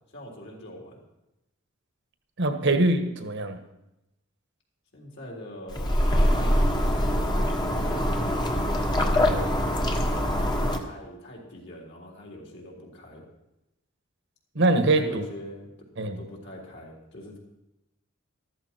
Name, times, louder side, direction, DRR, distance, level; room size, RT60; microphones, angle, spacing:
voice 1, 0.1-1.0 4.9-7.2 7.7-8.2 10.4-13.2 14.9-15.9 16.2-17.4, left 1 dB, 55° left, -1 dB, 3.8 m, -43 dB
voice 2, 2.4-3.6 9.1-9.6 14.5-15.2 16.0-16.2, right 2 dB, 60° right, 7 dB, 1.4 m, -24 dB
sound 1, 5.7-10.8, equal, 20° left, 1.4 m, -24 dB
14.0 x 13.5 x 4.5 m, 0.92 s
head